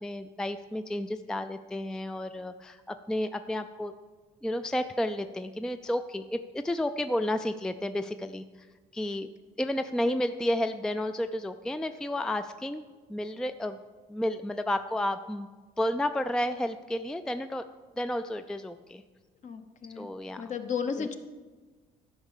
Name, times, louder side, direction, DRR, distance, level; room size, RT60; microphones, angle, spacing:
voice 1, 0.0-3.9 4.4-8.7 8.9-9.3 9.6-12.8 13.1-13.8 14.1-15.5 15.8-17.6 18.0-19.0 20.0-20.4 21.0-21.1, left 1 dB, 5° left, 9 dB, 0.3 m, -31 dB
voice 2, 19.4-21.2, left 6 dB, 45° left, 8 dB, 1.0 m, -34 dB
11.5 x 5.5 x 7.2 m, 1.4 s
cardioid pair, 110°, 17 cm